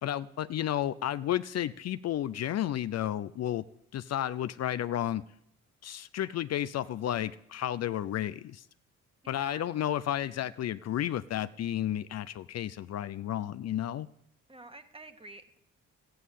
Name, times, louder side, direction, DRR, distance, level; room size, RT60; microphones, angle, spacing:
voice 1, 0.0-3.6 3.9-5.2 5.8-8.6 9.3-14.1, left 11 dB, 60° left, 15 dB, 0.5 m, -32 dB
voice 2, 9.2-9.6 14.5-15.6, right 1 dB, 20° right, 8 dB, 1.6 m, -49 dB
14.0 x 9.4 x 8.4 m, 0.75 s
cardioid pair, 90°, 30 cm